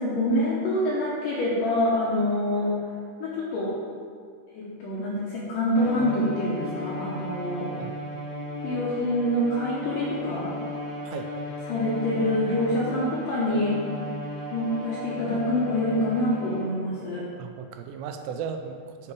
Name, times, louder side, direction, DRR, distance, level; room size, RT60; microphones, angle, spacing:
voice 1, 0.0-2.7 3.2-3.8 4.5-7.7 8.6-10.5 11.7-13.8 14.5-17.3, left 1 dB, 70° left, -6 dB, 2.1 m, -26 dB
Bowed string instrument, 5.7-17.0, left 1 dB, 55° left, 1.3 m, -35 dB
voice 2, 17.4-19.1, right 6 dB, 85° right, 6 dB, 2.7 m, -36 dB
8.8 x 4.8 x 4.8 m, 2.1 s
omnidirectional pair, 5.0 m